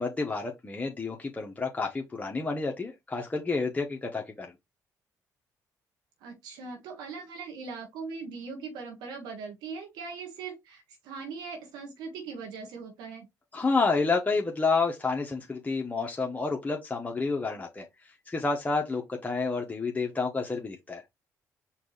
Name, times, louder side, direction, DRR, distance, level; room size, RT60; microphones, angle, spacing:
voice 1, 0.0-4.5 13.5-17.8 18.3-21.0, left 4 dB, 20° left, 1.1 m, -29 dB
voice 2, 6.2-13.3, right 5 dB, 90° right, 1.3 m, -40 dB
4.6 x 2.6 x 4.0 m
supercardioid pair, 70°, 7 cm